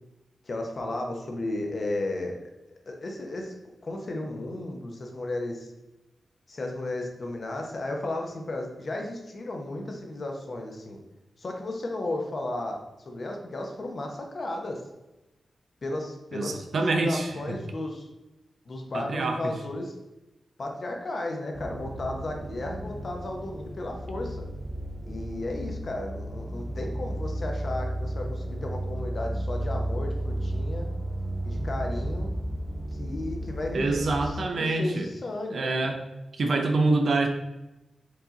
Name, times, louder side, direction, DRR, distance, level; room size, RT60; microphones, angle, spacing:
voice 1, 0.4-2.5 2.9-3.5 3.8-5.7 6.5-11.0 11.4-14.8 15.8-16.7 17.0-18.1 18.7-19.9 20.6-24.4 25.1-30.9 31.4-32.3 32.9-35.9, left 2 dB, 45° left, 2 dB, 0.8 m, -34 dB
voice 2, 16.3-17.3 18.9-19.5 33.7-35.1 35.5-36.0 36.3-37.3, right 3 dB, 60° right, 4 dB, 0.6 m, -26 dB
sound 1, 21.5-34.3, right 1 dB, 10° right, 0.7 m, -33 dB
4.7 x 2.8 x 3.8 m, 1.0 s
wide cardioid pair, 135°, 0 cm